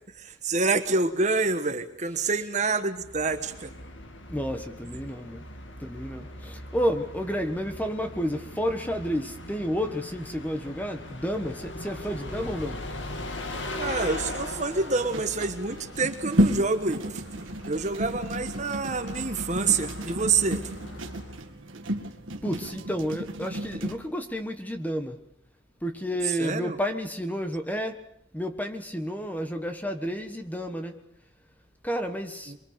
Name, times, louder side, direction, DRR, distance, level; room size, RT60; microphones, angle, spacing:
voice 1, 0.1-3.7 13.8-17.2 17.6-22.5 26.2-26.8 32.5-32.6, right 4 dB, 35° right, 9 dB, 1.3 m, -28 dB
Bus, 2.9-21.5, left 1 dB, 70° left, 2.1 m, -40 dB
voice 2, 4.3-5.5 5.8-12.8 22.4-25.2 25.8-28.0 28.3-31.0 31.8-32.5, equal, 10° left, 7 dB, 1.5 m, -31 dB
sound 1, 14.6-24.0, right 1 dB, 90° right, 2.2 m, -32 dB
24.5 x 23.5 x 6.8 m, 0.74 s
head